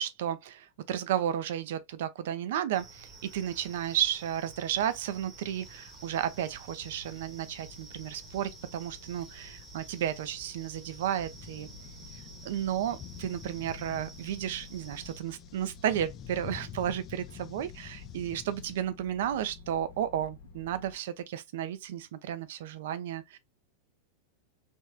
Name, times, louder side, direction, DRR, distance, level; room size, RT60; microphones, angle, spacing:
voice 1, 0.0-11.7 12.4-23.4, right 10 dB, 55° right, 0.4 m, -33 dB
sound 1, 2.7-15.2, right 3 dB, 20° right, 0.9 m, -51 dB
sound 2, 5.6-18.8, left 10 dB, 30° left, 0.3 m, -50 dB
sound 3, 6.8-21.0, left 4 dB, 65° left, 0.9 m, -52 dB
3.5 x 3.1 x 2.3 m
figure-of-eight pair, 90°, 0 cm